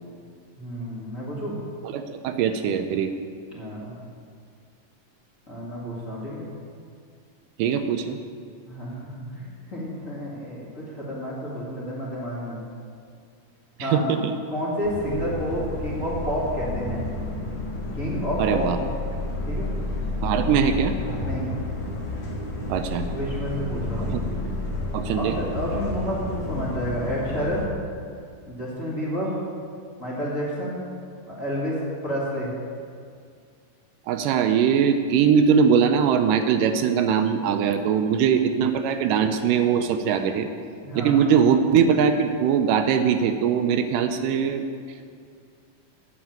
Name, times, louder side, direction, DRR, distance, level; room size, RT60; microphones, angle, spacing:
voice 1, 0.6-1.6 3.5-3.9 5.5-6.4 8.7-9.4 9.7-12.6 13.8-14.0 14.5-17.1 17.9-18.7 19.5-19.7 21.1-21.5 23.0-24.3 25.1-27.7 28.5-29.3 30.0-30.8 31.3-32.5 40.8-41.2, equal, 30° left, -7 dB, 1.9 m, -30 dB
voice 2, 1.8-3.1 7.6-8.2 13.8-14.3 18.4-18.8 20.2-20.9 22.7-23.1 24.1-24.2 24.9-25.4 34.1-40.5 41.0-44.7, right 7 dB, 80° right, 7 dB, 2.1 m, -21 dB
sound 1, 14.8-27.7, left 2 dB, 45° left, 1.9 m, -31 dB
9.4 x 6.9 x 8.8 m, 2.2 s
omnidirectional pair, 3.9 m